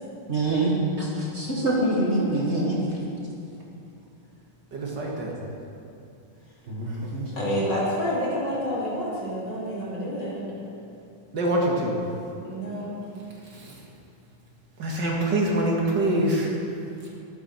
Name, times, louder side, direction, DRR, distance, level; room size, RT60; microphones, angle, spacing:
voice 1, 0.3-3.0 6.7-7.3, right 1 dB, 35° right, -4 dB, 1.9 m, -25 dB
voice 2, 4.7-5.4 11.3-12.0 13.5-13.7 14.8-16.5, right 1 dB, 65° right, -2 dB, 2.3 m, -24 dB
voice 3, 7.3-10.5 12.4-13.1, equal, 65° left, -7 dB, 3.7 m, -29 dB
13.0 x 12.0 x 4.4 m, 2.7 s
omnidirectional pair, 2.1 m